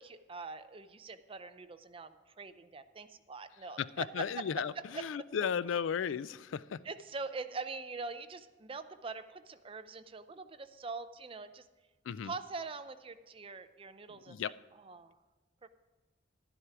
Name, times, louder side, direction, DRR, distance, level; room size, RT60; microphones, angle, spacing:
voice 1, 0.0-4.6 4.9-5.1 6.8-11.7 12.2-15.2 15.6-15.7, right 4 dB, 30° right, 11 dB, 0.5 m, -43 dB
voice 2, 3.8-6.8 12.1-12.3 14.1-14.5, left 7 dB, 80° left, 18 dB, 0.4 m, -35 dB
12.0 x 9.9 x 4.7 m, 1.2 s
head